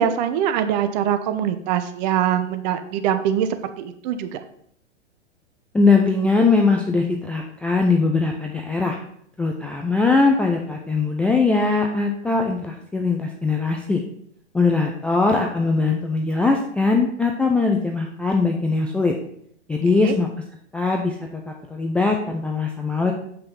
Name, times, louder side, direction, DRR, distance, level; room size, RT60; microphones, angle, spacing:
voice 1, 0.0-3.5 3.8-4.4 19.9-20.1, right 9 dB, 40° right, 9 dB, 0.9 m, -23 dB
voice 2, 5.7-9.0 9.4-14.0 14.5-19.1 19.7-20.3 20.7-23.1, left 3 dB, 5° left, 1 dB, 0.4 m, -21 dB
7.8 x 5.7 x 5.5 m, 0.67 s
figure-of-eight pair, 105°, 35 cm